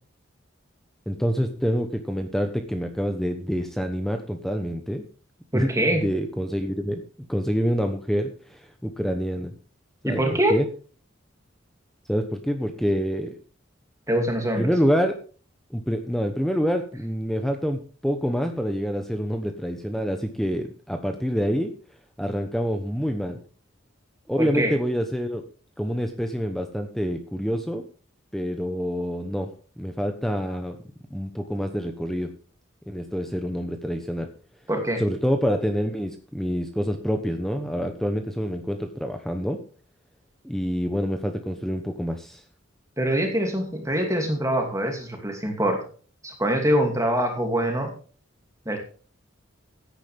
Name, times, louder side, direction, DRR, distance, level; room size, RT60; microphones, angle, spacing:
voice 1, 1.1-5.1 5.5-7.0 7.3-9.5 10.0-10.7 12.1-13.4 14.6-15.1 15.7-21.7 22.2-23.4 24.3-25.5 25.8-27.9 28.3-30.8 31.1-32.3 32.9-34.3 35.0-39.6 40.4-42.4, equal, ahead, 5 dB, 1.0 m, -27 dB
voice 2, 5.5-6.0 10.0-10.6 14.1-14.7 24.4-24.7 34.7-35.0 43.0-45.8 46.2-47.9 48.7-48.8, right 1 dB, 15° right, 3 dB, 2.6 m, -24 dB
16.0 x 9.8 x 3.5 m, 0.39 s
head